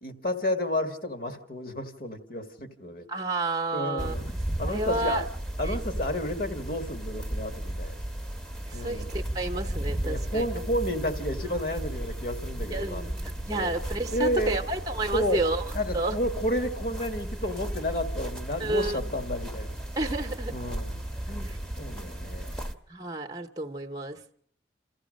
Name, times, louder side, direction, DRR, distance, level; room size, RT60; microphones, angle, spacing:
voice 1, 0.0-3.0 3.7-4.3 4.6-5.2 5.6-7.9 8.7-9.1 10.0-13.0 13.5-13.7 14.1-14.6 15.1-15.4 15.7-19.8 20.1-20.2 20.5-21.0 21.3-21.5 21.8-22.5, left 1 dB, 50° left, 6 dB, 1.9 m, -31 dB
voice 2, 3.1-5.3 5.6-5.8 8.7-10.5 12.7-15.7 15.9-16.2 18.6-19.1 20.0-20.5 21.4-21.6 22.9-24.2, right 2 dB, 20° right, 5 dB, 0.9 m, -31 dB
FP Antique Market Ambience, 4.0-22.7, right 1 dB, 5° left, 1.1 m, -34 dB
28.0 x 14.5 x 6.4 m, 0.65 s
head